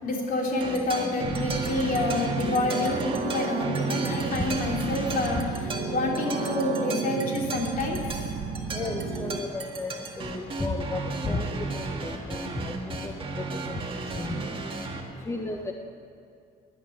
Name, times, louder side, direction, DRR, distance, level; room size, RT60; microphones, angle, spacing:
voice 1, 0.0-8.0, left 2 dB, 55° left, -1 dB, 3.5 m, -28 dB
sound 1, 0.6-15.0, right 3 dB, 30° right, 2.0 m, -34 dB
sound 2, 1.2-9.4, right 5 dB, 50° right, 1.3 m, -33 dB
voice 2, 8.7-9.9 10.2-11.0 11.3-12.7 13.0-13.1 14.2-14.4 15.3-15.7, left 2 dB, 15° left, 3 dB, 1.0 m, -32 dB
13.0 x 11.0 x 9.4 m, 2.3 s
cardioid pair, 110°, 17 cm